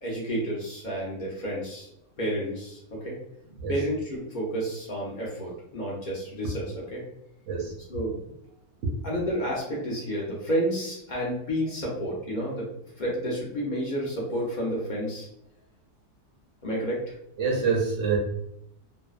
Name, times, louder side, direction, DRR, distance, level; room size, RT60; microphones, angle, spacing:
voice 1, 0.0-1.9 2.2-3.2 3.7-7.0 7.9-8.3 9.0-12.7 13.0-15.3 16.6-17.1, equal, 60° left, -4 dB, 0.5 m, -30 dB
voice 2, 17.4-18.2, right 5 dB, 65° right, -1 dB, 0.8 m, -25 dB
2.6 x 2.1 x 2.3 m, 0.79 s
omnidirectional pair, 1.6 m